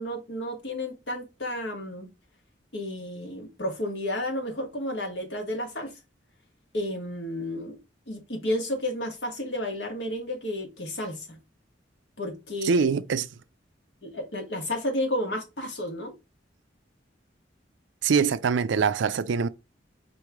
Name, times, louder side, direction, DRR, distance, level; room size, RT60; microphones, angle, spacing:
voice 1, 0.0-2.1 2.7-5.9 6.7-7.8 8.1-11.4 12.2-12.9 14.0-16.1, left 1 dB, 65° left, 1.4 m, -32 dB
voice 2, 12.6-13.3 18.0-19.5, right 5 dB, 90° right, 0.4 m, -23 dB
4.5 x 3.1 x 3.5 m
head